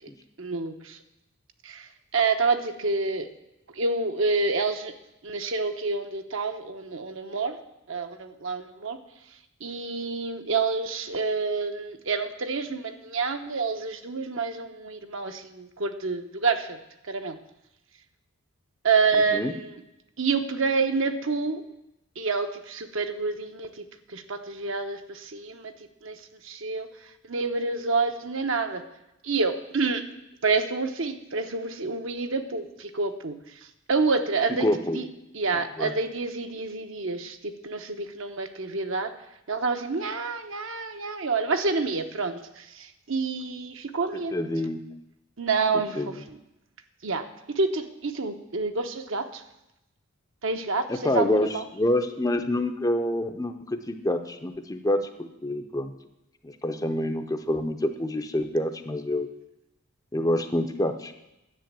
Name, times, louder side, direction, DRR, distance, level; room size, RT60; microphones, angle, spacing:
voice 1, 0.4-1.0 1.6-3.3 3.7-4.9 5.2-7.6 7.9-9.0 9.6-16.8 17.1-17.4 18.8-19.7 20.2-21.6 22.2-25.7 26.0-26.9 27.2-28.8 29.2-30.0 30.4-33.4 33.9-34.7 34.9-35.1 35.3-39.1 39.5-44.3 45.4-46.4 47.0-47.3 47.5-49.4 50.4-51.6, right 4 dB, 60° right, 7 dB, 0.9 m, -28 dB
voice 2, 34.6-35.0 35.5-35.9 44.3-44.9 46.0-46.2 50.9-55.9 56.4-59.3 60.1-61.1, left 1 dB, 15° left, 7 dB, 0.6 m, -27 dB
10.5 x 7.9 x 7.5 m, 0.89 s
head